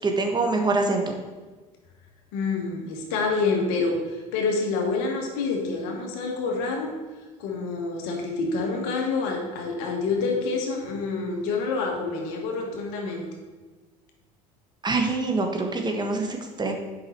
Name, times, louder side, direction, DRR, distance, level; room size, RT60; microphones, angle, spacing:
voice 1, 0.0-1.1 14.8-16.7, right 3 dB, 25° right, 2 dB, 1.4 m, -25 dB
voice 2, 2.3-6.9 7.4-13.3, left 4 dB, 70° left, 2 dB, 1.6 m, -27 dB
7.7 x 5.5 x 4.5 m, 1.3 s
hypercardioid pair, 75°, 18 cm